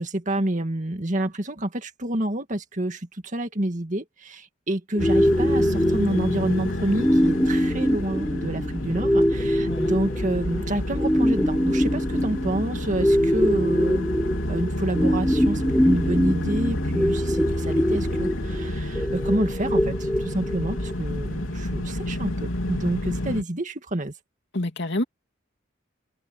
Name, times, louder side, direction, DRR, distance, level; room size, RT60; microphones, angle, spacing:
voice 1, 0.0-14.1 14.5-24.1, right 1 dB, 40° right, 2.0 m, -28 dB
sound 1, 5.0-23.4, left 1 dB, 90° left, 3.6 m, -29 dB
sound 2, 5.0-20.9, equal, 5° left, 0.9 m, -24 dB
voice 2, 24.5-25.0, left 1 dB, 60° left, 2.9 m, -27 dB
head